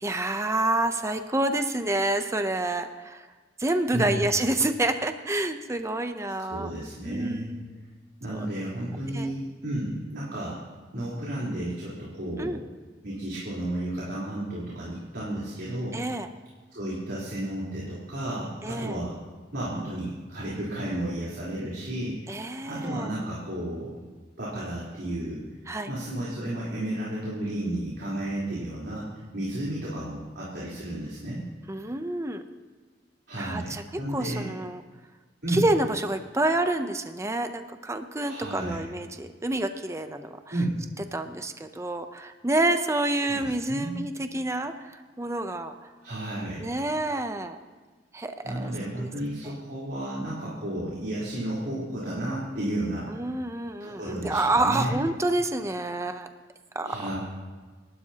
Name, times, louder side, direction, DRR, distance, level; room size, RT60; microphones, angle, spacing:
voice 1, 0.0-3.3 3.6-6.7 7.0-7.7 8.3-8.5 9.1-9.3 12.4-12.6 15.9-16.3 18.6-19.0 22.3-23.1 25.7-25.9 31.7-32.4 33.4-34.8 35.5-40.4 41.1-45.7 46.6-47.6 48.1-49.1 49.4-49.5 53.1-56.3 56.7-57.0, right 2 dB, 15° right, 8 dB, 0.7 m, -28 dB
voice 2, 3.9-4.2 6.5-7.5 8.2-10.6 10.9-12.6 13.0-16.0 16.7-19.2 19.5-24.0 24.4-25.5 25.9-31.5 33.3-34.5 35.4-35.7 38.2-38.8 40.5-40.8 43.3-44.0 46.0-46.7 48.4-53.1 53.8-55.0 56.8-57.2, right 1 dB, 60° right, -7 dB, 3.9 m, -32 dB
28.5 x 12.0 x 2.9 m, 1.3 s
head